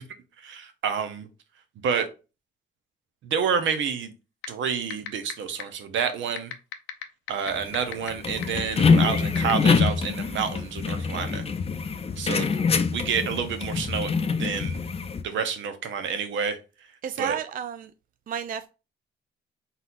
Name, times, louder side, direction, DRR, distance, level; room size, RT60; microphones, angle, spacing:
voice 1, 0.4-1.3 1.8-2.1 3.2-4.1 4.5-6.5 7.3-11.4 12.2-12.5 12.9-14.8 15.2-16.6 17.2-17.4, right 6 dB, 70° right, 0.8 m, -28 dB
sound 1, 4.4-4.5 4.9-5.3 5.6-5.7 6.4-8.1 8.4-8.5 9.4-9.5, left 14 dB, 90° left, 0.7 m, -32 dB
sound 2, 7.5-15.2, left 5 dB, 30° left, 0.5 m, -25 dB
voice 2, 17.0-17.9 18.3-18.7, right 8 dB, 45° right, 0.4 m, -31 dB
4.1 x 4.1 x 2.5 m
cardioid pair, 90°, 20 cm